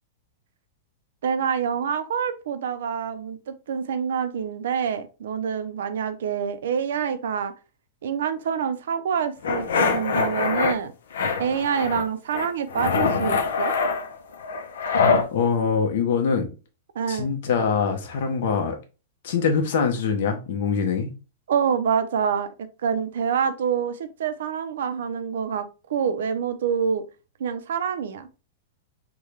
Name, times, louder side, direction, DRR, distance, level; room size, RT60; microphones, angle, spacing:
voice 1, 1.2-7.5 8.0-10.9 11.4-13.8 17.0-17.3 21.5-22.5 22.8-27.0 27.4-28.3, right 7 dB, 80° right, 0.5 m, -26 dB
sound 1, 9.4-10.7 11.1-12.0 12.3-15.3, left 5 dB, 90° left, 0.6 m, -24 dB
voice 2, 15.3-16.5 17.1-18.8 19.2-21.1, left 6 dB, 65° left, 0.8 m, -23 dB
3.7 x 2.2 x 3.1 m
supercardioid pair, 150°, 0 cm